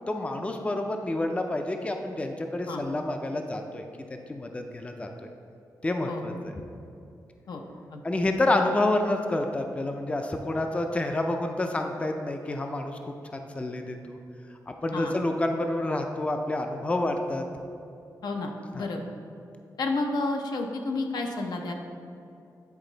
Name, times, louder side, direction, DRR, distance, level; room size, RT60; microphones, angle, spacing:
voice 1, 0.1-3.8 4.1-5.1 5.8-6.3 8.0-14.2 14.8-17.4 18.7-18.9, left 2 dB, 20° left, 4 dB, 0.4 m, -28 dB
voice 2, 6.1-6.4 7.5-7.6 7.9-8.0 14.9-15.1 18.2-19.0 19.8-21.7, left 2 dB, 80° left, 3 dB, 0.7 m, -31 dB
9.4 x 4.0 x 3.9 m, 2.6 s
wide cardioid pair, 110°, 7 cm